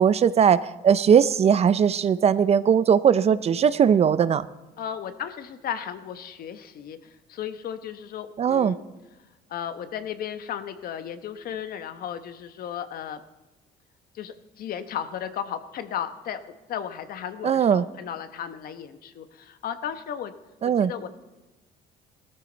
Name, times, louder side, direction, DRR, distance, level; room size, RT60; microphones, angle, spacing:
voice 1, 0.0-4.5 8.4-8.7 17.4-17.8 20.6-20.9, right 7 dB, 40° right, 15 dB, 0.5 m, -19 dB
voice 2, 4.8-7.0 7.3-8.8 9.5-13.2 14.1-16.4 16.7-20.3 20.6-21.1, left 9 dB, 60° left, 10 dB, 1.1 m, -35 dB
17.5 x 13.5 x 4.0 m, 1.1 s
cardioid pair, 110°, 17 cm